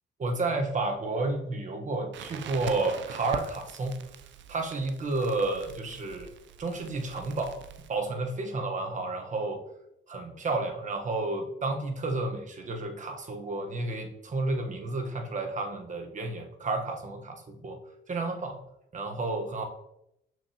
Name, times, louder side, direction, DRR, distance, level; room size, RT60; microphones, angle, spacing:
voice 1, 0.2-4.0 4.5-6.3 6.6-7.6 7.9-9.6 10.1-17.8 18.1-18.6 18.9-19.6, right 2 dB, 40° right, 3 dB, 1.2 m, -31 dB
Crackle, 2.1-7.9, right 8 dB, 70° right, 0.6 m, -44 dB
6.6 x 6.0 x 2.9 m, 0.81 s
cardioid pair, 90°, 20 cm